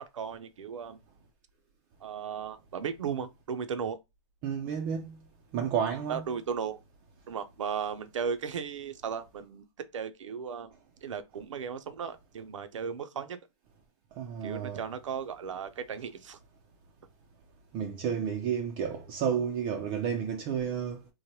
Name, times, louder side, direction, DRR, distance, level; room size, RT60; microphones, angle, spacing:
voice 1, 0.1-1.0 2.0-4.0 6.1-6.8 7.3-9.7 9.9-10.7 11.0-13.4 14.4-16.4, right 7 dB, 85° right, 0.5 m, -36 dB
voice 2, 4.4-5.2 5.5-6.2 14.2-14.8 17.7-21.0, right 7 dB, 30° right, 0.4 m, -31 dB
3.1 x 2.1 x 2.8 m
hypercardioid pair, 130°, 16 cm